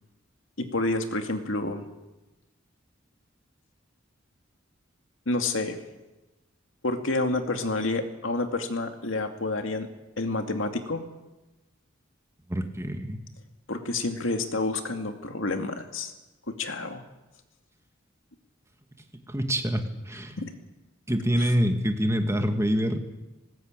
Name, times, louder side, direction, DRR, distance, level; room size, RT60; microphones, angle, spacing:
voice 1, 0.6-1.8 5.3-5.8 6.8-9.9 10.2-11.1 13.7-16.1 16.6-17.0 20.4-20.5 21.4-21.5, left 2 dB, 75° left, 6 dB, 2.3 m, -29 dB
voice 2, 12.5-13.2 19.3-20.4 21.1-23.0, equal, 15° right, 6 dB, 1.9 m, -26 dB
19.5 x 19.0 x 9.0 m, 1.1 s
head